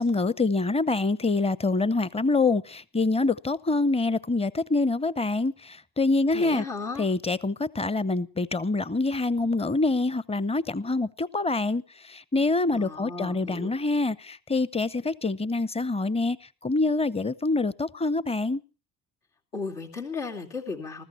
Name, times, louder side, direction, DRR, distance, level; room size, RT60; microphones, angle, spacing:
voice 1, 0.0-6.6 7.0-11.8 12.1-16.4 16.6-18.6, left 3 dB, 15° left, 0.7 m, -25 dB
voice 2, 6.3-7.0 12.7-13.7 19.5-21.0, left 4 dB, 80° left, 2.7 m, -35 dB
20.5 x 14.5 x 4.3 m
figure-of-eight pair, 45°, 46 cm